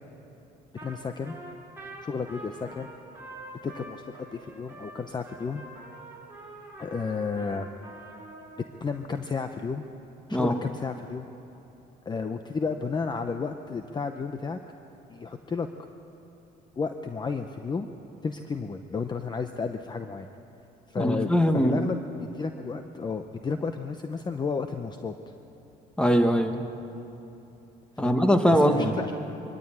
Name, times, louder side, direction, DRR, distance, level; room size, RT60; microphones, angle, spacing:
voice 1, 0.8-1.4 2.0-2.9 3.6-5.6 6.8-7.7 8.8-9.8 10.3-11.3 12.1-14.6 15.1-15.7 16.8-17.9 18.2-20.3 20.9-21.3 21.6-25.3 28.0-28.2 28.5-29.1, left 5 dB, 25° left, 7 dB, 0.8 m, -32 dB
Trumpet, 0.8-1.0 1.2-8.6, right 1 dB, 15° right, 6.0 m, -45 dB
voice 2, 21.0-21.7 26.0-26.6 28.0-28.9, equal, 5° left, 6 dB, 1.6 m, -21 dB
23.0 x 14.0 x 8.9 m, 3.0 s
cardioid pair, 110°, 17 cm